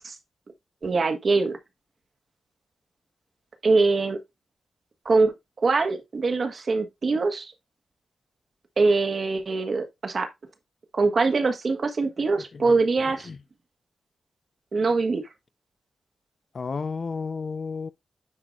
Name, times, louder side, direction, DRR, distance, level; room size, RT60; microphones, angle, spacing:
voice 1, 0.8-1.6 3.6-4.2 5.0-5.3 5.6-7.5 8.8-10.3 10.9-13.3 14.7-15.2, right 3 dB, 55° right, 1.4 m, -23 dB
voice 2, 12.2-13.4 16.5-17.9, left 4 dB, 55° left, 0.5 m, -34 dB
9.7 x 4.7 x 2.6 m
cardioid pair, 75°, 0 cm